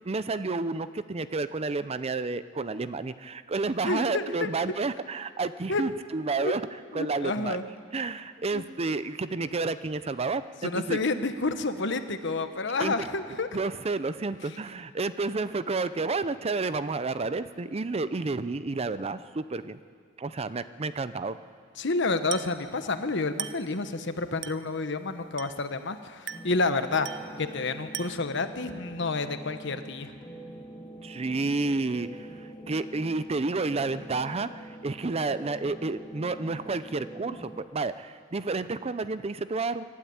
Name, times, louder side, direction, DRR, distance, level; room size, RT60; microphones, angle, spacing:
voice 1, 0.0-6.6 6.9-7.6 7.9-11.0 12.8-12.9 13.5-19.8 20.2-21.4 31.0-39.8, right 3 dB, 30° right, 13 dB, 0.5 m, -30 dB
voice 2, 3.8-4.5 5.7-5.8 6.4-6.5 6.9-7.6 8.5-8.6 10.6-13.5 21.8-27.1 27.4-30.1, left 3 dB, 65° left, 9 dB, 1.2 m, -29 dB
Glass, 22.3-22.7 23.4-23.7 24.4-24.7 25.4-25.7 26.3-26.6 27.0-27.4 27.9-28.4, right 11 dB, 65° right, 0.7 m, -38 dB
sound 1, 26.3-37.6, right 1 dB, 25° left, 1.6 m, -45 dB
25.0 x 12.5 x 8.8 m, 2.1 s
head